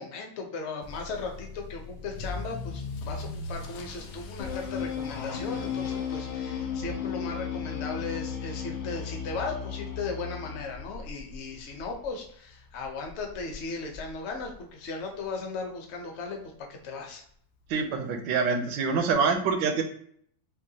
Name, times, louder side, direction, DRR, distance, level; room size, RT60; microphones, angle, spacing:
voice 1, 0.0-16.4 16.7-17.2, left 4 dB, 50° left, 2 dB, 0.8 m, -37 dB
Motor vehicle (road) / Accelerating revving vroom, 0.8-15.7 16.0-16.4 16.9-17.0 17.3-17.4 17.6-17.7 19.0-19.1, left 3 dB, 70° left, 1.1 m, -43 dB
sound 1, 4.4-10.9, left 7 dB, 85° left, 1.6 m, -34 dB
voice 2, 17.7-19.8, right 5 dB, 80° right, 6 dB, 1.4 m, -25 dB
6.3 x 2.2 x 2.8 m, 0.64 s
omnidirectional pair, 2.0 m